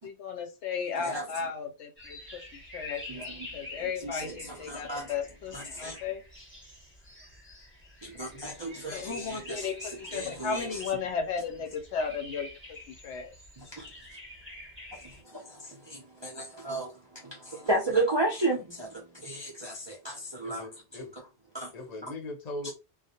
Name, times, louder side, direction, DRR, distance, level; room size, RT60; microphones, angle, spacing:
voice 1, 0.0-6.2 8.9-13.3, left 6 dB, 85° left, 0.9 m, -35 dB
sound 1, 2.0-15.2, left 1 dB, 10° left, 0.9 m, -48 dB
voice 2, 3.1-3.5 3.8-5.1 5.5-6.1 8.0-10.8 13.6-13.9 14.9-21.2 21.5-21.7 22.0-22.1 22.6-22.7, right 2 dB, 40° right, 0.4 m, -34 dB
voice 3, 20.4-21.1 21.7-22.7, left 1 dB, 45° left, 0.7 m, -39 dB
2.3 x 2.0 x 2.8 m
omnidirectional pair, 1.1 m